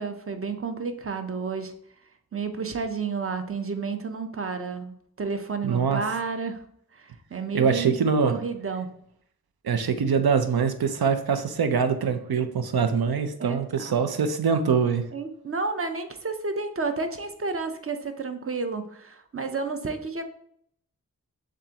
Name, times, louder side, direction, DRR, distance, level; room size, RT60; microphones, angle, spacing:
voice 1, 0.0-1.7 2.3-6.6 6.9-7.9 8.2-8.9 13.4-14.0 15.1-20.2, right 4 dB, 40° right, 7 dB, 0.6 m, -31 dB
voice 2, 5.6-6.0 7.5-8.3 9.6-15.0, right 6 dB, 90° right, 9 dB, 0.6 m, -23 dB
7.0 x 2.5 x 2.8 m, 0.68 s
wide cardioid pair, 45°, 36 cm